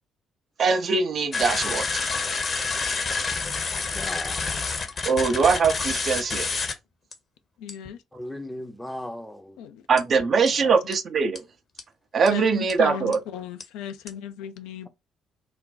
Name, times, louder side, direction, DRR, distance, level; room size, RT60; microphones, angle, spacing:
voice 1, 0.6-1.9 5.0-6.5 9.9-11.4 12.1-13.2, right 5 dB, 45° right, 0.5 m, -22 dB
sound 1, 1.3-6.7 7.1-7.2 7.7-7.9 10.0-10.1 10.5-10.6 10.9-11.0 11.4-11.5 11.8-11.9 12.3-12.4 12.7-12.8 13.1-13.2 13.6-13.7 14.1-14.2, left 4 dB, 40° left, 0.7 m, -28 dB
voice 2, 3.8-5.0 8.1-9.6, left 1 dB, 5° left, 0.6 m, -38 dB
voice 3, 7.6-8.0 9.6-9.8 10.6-10.7 12.3-14.9, left 8 dB, 65° left, 0.3 m, -36 dB
2.5 x 2.2 x 3.8 m
figure-of-eight pair, 45°, 0 cm